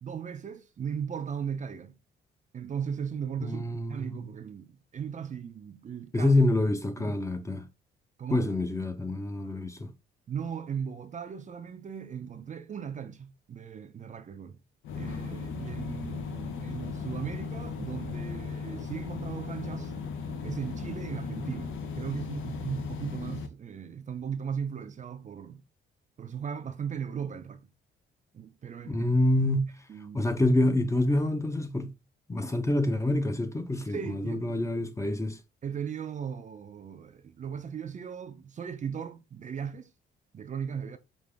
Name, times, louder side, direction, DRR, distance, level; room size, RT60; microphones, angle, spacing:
voice 1, 0.0-2.0 2.5-3.6 3.9-6.3 6.9-7.2 8.2-8.5 10.3-14.6 15.0-19.9 20.4-25.6 26.2-27.6 28.3-29.1 29.9-30.3 33.9-34.6 35.6-39.9 40.3-41.0, right 7 dB, 40° right, 0.5 m, -37 dB
voice 2, 3.4-4.3 6.1-7.7 8.3-9.9 28.8-29.8 30.1-31.9 32.3-35.4, left 1 dB, 15° left, 0.6 m, -27 dB
sound 1, 14.8-23.5, left 5 dB, 80° left, 0.8 m, -36 dB
5.2 x 2.5 x 3.4 m
cardioid pair, 90°, 20 cm